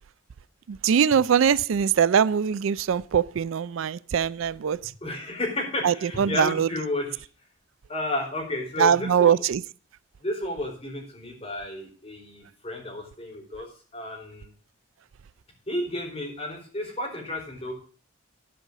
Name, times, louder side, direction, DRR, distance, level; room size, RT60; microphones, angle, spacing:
voice 1, 0.7-4.8 5.8-6.7 8.8-9.6, right 7 dB, 75° right, 0.4 m, -22 dB
voice 2, 5.0-7.2 7.9-9.4 10.2-13.7 13.9-14.5 15.7-17.7, left 1 dB, 30° left, 4.5 m, -32 dB
11.0 x 5.5 x 7.4 m
head